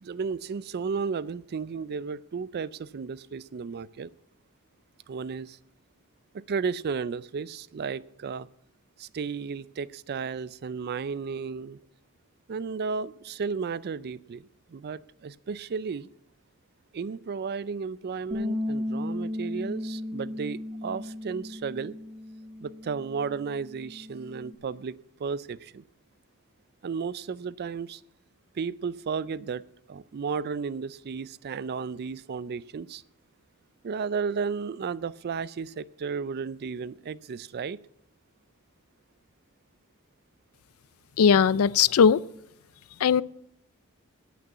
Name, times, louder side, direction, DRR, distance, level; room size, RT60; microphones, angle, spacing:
voice 1, 0.0-4.1 5.1-5.6 6.5-8.5 9.0-11.8 12.5-14.4 14.7-16.1 16.9-21.9 22.6-24.9 25.2-25.8 26.8-28.0 28.6-29.6 29.9-33.0 33.8-37.8, right 5 dB, 50° right, 0.4 m, -33 dB
Bass guitar, 18.3-24.6, left 1 dB, 25° right, 1.0 m, -35 dB
voice 2, 41.2-42.2 43.0-43.2, left 7 dB, 75° left, 0.4 m, -19 dB
9.3 x 8.5 x 8.3 m
head